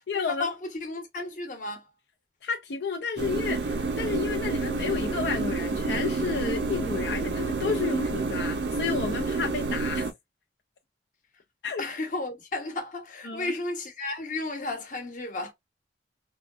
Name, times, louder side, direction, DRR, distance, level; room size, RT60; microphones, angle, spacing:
voice 1, 0.1-0.5 2.4-10.1 11.6-11.8 13.2-13.6, left 5 dB, 75° left, 0.5 m, -31 dB
voice 2, 0.8-1.9 11.8-15.5, left 2 dB, 45° left, 1.0 m, -33 dB
sound 1, 3.2-10.1, right 3 dB, 70° right, 0.5 m, -29 dB
3.6 x 2.3 x 2.4 m
head